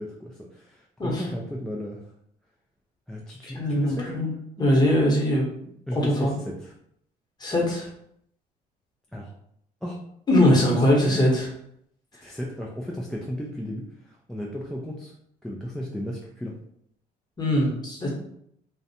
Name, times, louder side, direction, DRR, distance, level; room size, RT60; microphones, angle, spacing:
voice 1, 0.0-2.0 3.1-4.1 5.9-6.7 9.1-9.3 9.8-10.0 10.7-11.2 12.2-15.1 15.4-16.6, equal, 5° left, -2 dB, 0.3 m, -34 dB
voice 2, 3.5-4.3 4.6-5.4 6.0-6.4 7.4-7.9 10.3-11.5 17.4-18.1, left 1 dB, 25° left, -3 dB, 0.9 m, -21 dB
2.5 x 2.1 x 2.7 m, 0.71 s
cardioid pair, 110°, 17 cm